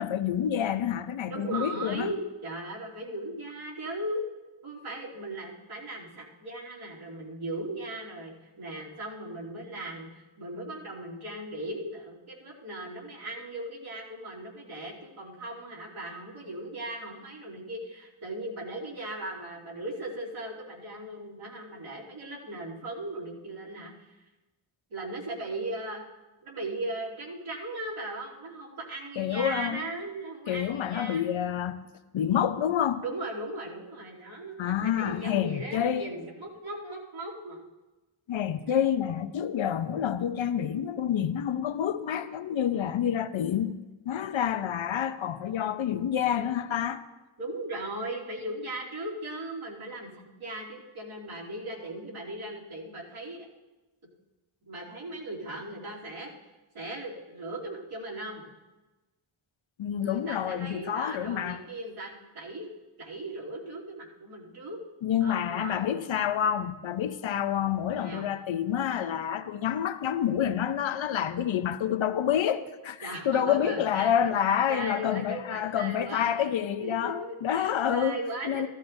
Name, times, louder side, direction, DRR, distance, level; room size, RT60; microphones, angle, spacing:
voice 1, 0.0-2.1 29.2-29.8 30.5-31.9 32.1-33.0 34.6-36.1 38.3-43.8 44.1-47.0 59.8-61.6 65.0-78.2 78.4-78.7, left 9 dB, 70° left, 0.6 m, -28 dB
voice 2, 1.3-4.2 4.6-24.2 24.9-26.0 26.4-31.3 33.0-37.6 38.7-38.8 47.4-53.5 54.6-56.3 56.7-58.4 59.9-62.7 63.0-64.8 65.2-66.0 67.9-68.3 73.0-74.3 74.7-76.5 76.8-78.7, right 1 dB, 80° right, 3.0 m, -38 dB
15.0 x 13.0 x 2.6 m
wide cardioid pair, 160°, 49 cm